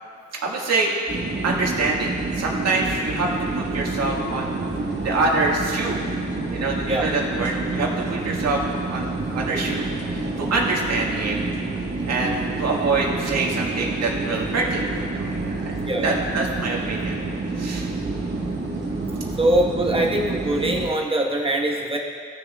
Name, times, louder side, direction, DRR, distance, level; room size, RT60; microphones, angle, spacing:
voice 1, 0.4-0.9 1.4-4.7 5.0-6.0 6.5-8.6 8.9-11.5 12.0-17.2 17.6-17.9, right 3 dB, 60° right, -2 dB, 1.8 m, -25 dB
sound 1, 1.1-20.9, right 3 dB, 35° right, 1.5 m, -28 dB
voice 2, 15.8-16.1 19.4-22.0, right 1 dB, 20° right, -1 dB, 1.3 m, -22 dB
17.0 x 6.7 x 2.4 m, 2.2 s
cardioid pair, 90°, 30 cm